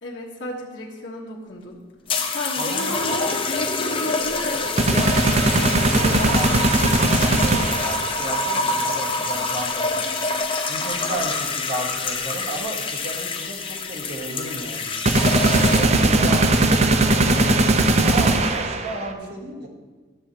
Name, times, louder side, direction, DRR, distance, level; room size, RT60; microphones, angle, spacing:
voice 1, 0.0-1.8 2.3-4.7 6.0-6.4 6.7-7.0, left 1 dB, 75° left, -3 dB, 1.4 m, -32 dB
sound 1, 2.1-16.1 17.0-17.3, left 3 dB, 30° left, 0.7 m, -26 dB
voice 2, 2.6-3.2 5.9-10.0 10.7-14.9 15.5-16.8 18.0-19.7, right 1 dB, 60° right, -1 dB, 1.7 m, -32 dB
sound 2, 4.8-8.1 15.1-19.1, right 2 dB, 35° right, 0.6 m, -19 dB
12.5 x 7.0 x 2.9 m, 1.3 s
head